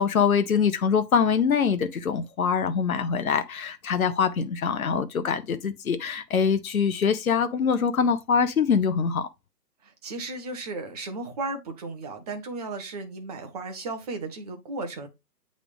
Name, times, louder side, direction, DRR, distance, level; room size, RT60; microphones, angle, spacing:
voice 1, 0.0-9.3, left 6 dB, 60° left, 0.9 m, -24 dB
voice 2, 9.8-15.1, right 3 dB, 25° right, 1.2 m, -35 dB
8.2 x 3.9 x 3.5 m
figure-of-eight pair, 140°, 48 cm